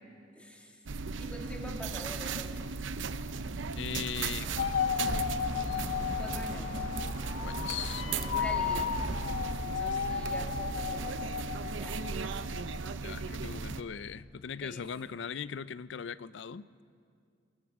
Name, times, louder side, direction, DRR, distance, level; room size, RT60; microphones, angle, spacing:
voice 1, 0.3-0.8 1.2-2.6 6.2-6.9 7.8-9.0 9.8-11.1 11.7-12.2 14.6-14.8, equal, 5° left, 2.3 m, -44 dB
sound 1, 0.9-13.8, right 4 dB, 75° right, 0.7 m, -37 dB
voice 2, 3.7-5.2 5.6-5.9 7.4-8.1 9.8-9.9 13.0-16.8, left 7 dB, 65° left, 0.4 m, -40 dB
sound 2, 4.4-9.4, left 1 dB, 45° left, 7.4 m, -41 dB
sound 3, 4.6-12.9, left 7 dB, 85° left, 0.8 m, -34 dB
23.0 x 21.0 x 6.1 m
head